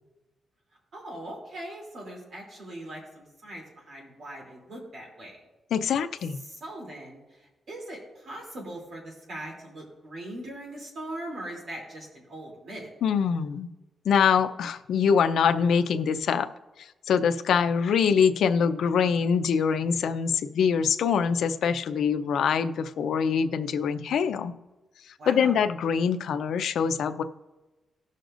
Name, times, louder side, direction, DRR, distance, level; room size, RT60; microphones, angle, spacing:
voice 1, 0.9-5.4 6.4-12.9 25.2-25.6, right 1 dB, 55° right, -1 dB, 3.0 m, -40 dB
voice 2, 5.7-6.4 13.0-13.7 14.0-16.5 16.8-24.5 25.1-27.2, left 6 dB, 80° left, 9 dB, 0.6 m, -24 dB
18.5 x 6.5 x 2.6 m, 1.1 s
wide cardioid pair, 160°, 0 cm